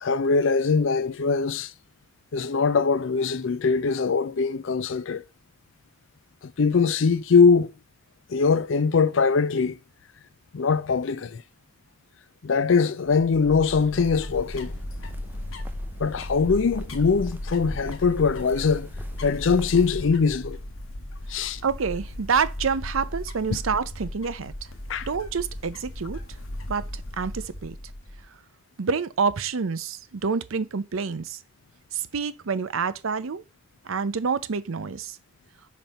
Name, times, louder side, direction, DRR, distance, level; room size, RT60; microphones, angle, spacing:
voice 1, 0.0-1.7 2.3-5.2 6.4-7.7 8.3-9.8 10.5-11.4 12.4-14.7 16.0-18.9 19.2-20.6 21.3-21.6 24.9-25.1, left 5 dB, 70° left, 0.5 m, -22 dB
sound 1, 13.1-28.3, left 1 dB, 90° left, 1.1 m, -36 dB
sound 2, 13.5-20.1, right 1 dB, 10° right, 0.6 m, -47 dB
voice 2, 21.6-24.5 25.1-26.2 26.7-26.8 27.2-27.7 28.8-31.4 31.9-33.4 33.9-35.2, right 5 dB, 90° right, 0.6 m, -27 dB
5.2 x 4.3 x 5.3 m
head